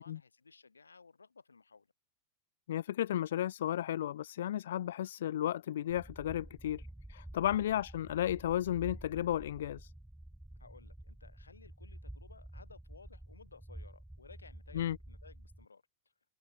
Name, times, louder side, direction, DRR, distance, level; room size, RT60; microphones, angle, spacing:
voice 1, 0.0-1.9 7.6-7.8 10.5-15.8, left 4 dB, 75° left, 6.7 m, -58 dB
voice 2, 2.7-6.8 7.1-9.9 14.7-15.0, left 11 dB, 60° left, 0.9 m, -33 dB
sound 1, 5.9-15.7, right 1 dB, 5° right, 3.0 m, -50 dB
figure-of-eight pair, 90°, 0 cm